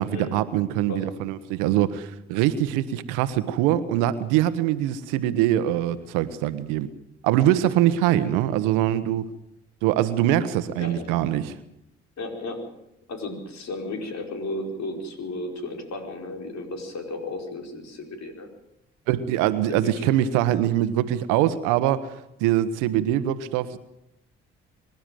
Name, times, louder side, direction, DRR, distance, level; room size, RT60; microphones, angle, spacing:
voice 1, 0.0-6.9 7.2-9.3 9.8-11.6 19.1-22.1 22.4-23.8, right 12 dB, 85° right, 14 dB, 1.2 m, -23 dB
voice 2, 10.8-11.1 12.2-12.7 13.1-18.5 19.7-20.0, left 2 dB, 65° left, 3 dB, 5.1 m, -34 dB
25.5 x 12.0 x 9.2 m, 0.84 s
hypercardioid pair, 50°, 30 cm